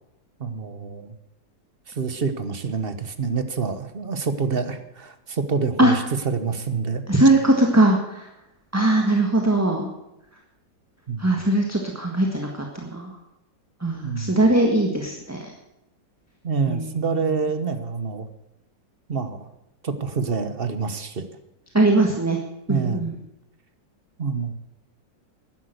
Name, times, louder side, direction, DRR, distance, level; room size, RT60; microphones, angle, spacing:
voice 1, 0.4-1.1 1.9-7.0 11.1-11.4 14.0-14.5 16.4-18.3 19.1-19.5 19.8-21.3 22.7-23.1 24.2-24.5, right 5 dB, 40° right, 10 dB, 1.1 m, -27 dB
voice 2, 7.1-8.3 8.7-9.9 11.2-13.1 13.8-15.5 16.7-17.0 21.7-22.4 22.7-23.1, right 2 dB, 10° right, 1 dB, 1.5 m, -20 dB
12.0 x 11.0 x 7.9 m, 0.88 s
omnidirectional pair, 2.0 m